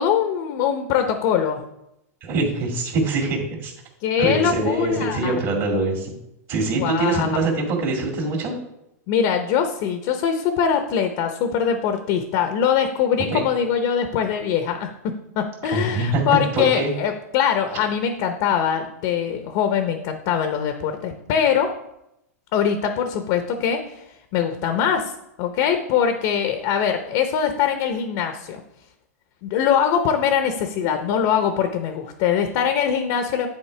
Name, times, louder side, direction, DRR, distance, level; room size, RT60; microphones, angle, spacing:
voice 1, 0.0-1.6 4.0-5.4 6.7-7.4 9.1-21.7 22.5-23.8 24.3-25.1 25.4-28.6 29.4-33.5, left 8 dB, 50° left, 6 dB, 0.8 m, -22 dB
voice 2, 2.2-3.7 4.2-6.1 6.5-8.5 13.3-13.4 15.7-16.3 16.5-16.9, right 2 dB, 45° right, -3 dB, 2.3 m, -23 dB
10.5 x 4.3 x 3.3 m, 0.84 s
hypercardioid pair, 125°, 9 cm